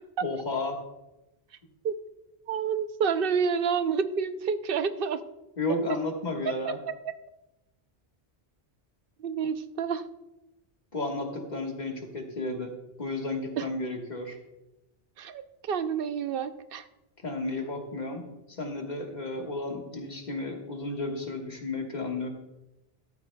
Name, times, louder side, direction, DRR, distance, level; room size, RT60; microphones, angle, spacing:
voice 1, 0.2-0.8 5.6-6.8 10.9-12.7 13.0-14.4 17.2-22.3, left 2 dB, 45° left, 2 dB, 1.5 m, -33 dB
voice 2, 2.5-5.2 6.6-6.7 9.2-10.0 13.6-13.7 15.2-15.4 15.7-16.8, right 6 dB, 65° right, 11 dB, 0.7 m, -28 dB
13.0 x 12.5 x 2.2 m, 0.97 s
omnidirectional pair, 1.1 m